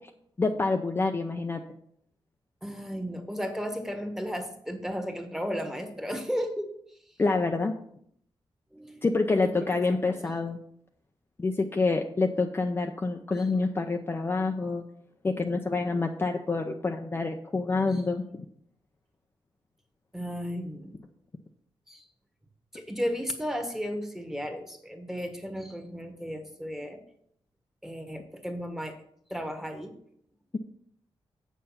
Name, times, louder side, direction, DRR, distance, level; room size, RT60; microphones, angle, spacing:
voice 1, 0.4-1.6 7.2-7.7 9.0-10.6 11.4-14.8 15.2-18.4, left 3 dB, 25° left, 3 dB, 0.6 m, -27 dB
voice 2, 2.6-6.7 8.7-9.0 9.4-9.7 10.1-10.3 17.9-18.0 20.1-21.0 21.9-22.1 22.7-27.0 27.8-29.0 29.3-29.9, equal, 5° right, 5 dB, 1.4 m, -34 dB
8.2 x 6.7 x 5.7 m, 0.67 s
wide cardioid pair, 135°, 9 cm